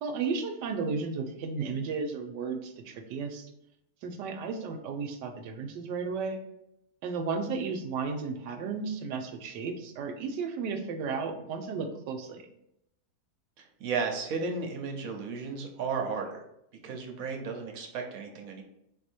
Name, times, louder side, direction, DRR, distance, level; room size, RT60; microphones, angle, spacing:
voice 1, 0.0-3.5 4.0-6.4 7.0-12.5, right 5 dB, 80° right, 6 dB, 1.2 m, -34 dB
voice 2, 13.6-16.4 16.8-18.6, right 5 dB, 65° right, 3 dB, 1.0 m, -34 dB
3.9 x 2.7 x 4.3 m, 0.80 s
omnidirectional pair, 1.9 m